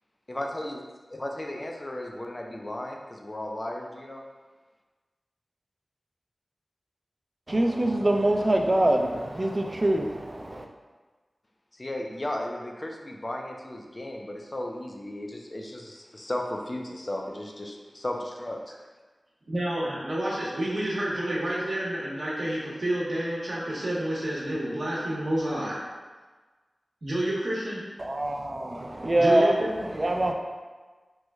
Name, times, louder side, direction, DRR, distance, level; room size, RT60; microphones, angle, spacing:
voice 1, 0.3-0.8 1.1-4.2 11.8-18.7, left 1 dB, 35° left, 0.4 m, -35 dB
voice 2, 7.5-10.7 28.0-30.3, right 1 dB, 35° right, 0.3 m, -24 dB
voice 3, 19.5-25.8 27.0-27.8 29.1-29.7, right 1 dB, 70° right, 0.8 m, -29 dB
3.1 x 2.1 x 3.5 m
wide cardioid pair, 65°, 0 cm